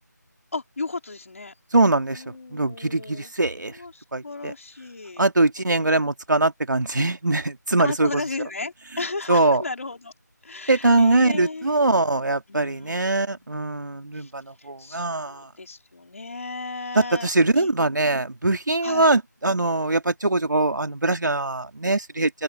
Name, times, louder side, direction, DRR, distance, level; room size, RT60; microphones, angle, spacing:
voice 1, 0.5-1.5 2.1-3.3 3.7-5.3 7.8-10.1 10.4-12.0 12.5-13.6 14.1-14.3 14.6-17.7 18.8-19.1, left 3 dB, 50° left, 4.6 m, -35 dB
voice 2, 1.7-2.2 2.5-3.8 4.1-4.5 5.2-8.1 9.3-9.6 10.7-15.5 17.0-22.3, right 2 dB, 80° right, 2.4 m, -22 dB
open air
figure-of-eight pair, 175°, 10 cm